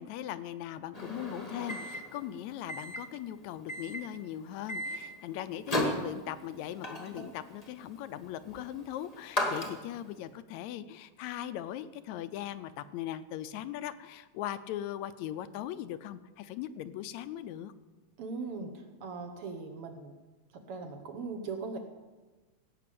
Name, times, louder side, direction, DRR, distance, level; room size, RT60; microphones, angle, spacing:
voice 1, 0.0-17.7, left 11 dB, 80° left, 13 dB, 1.9 m, -39 dB
Microwave oven, 0.9-10.2, left 1 dB, 20° left, 0.9 m, -37 dB
voice 2, 18.2-20.2 20.5-21.8, right 4 dB, 60° right, 5 dB, 1.7 m, -39 dB
17.5 x 6.0 x 8.4 m, 1.2 s
omnidirectional pair, 3.3 m